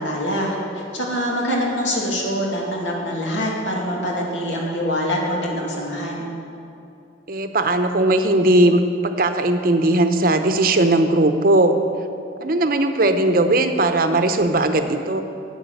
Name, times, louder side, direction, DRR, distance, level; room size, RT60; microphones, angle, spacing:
voice 1, 0.0-6.3, equal, 80° left, -2 dB, 2.4 m, -24 dB
voice 2, 7.3-11.8 12.4-15.2, right 1 dB, 50° right, 7 dB, 0.7 m, -18 dB
10.5 x 8.6 x 6.6 m, 2.7 s
head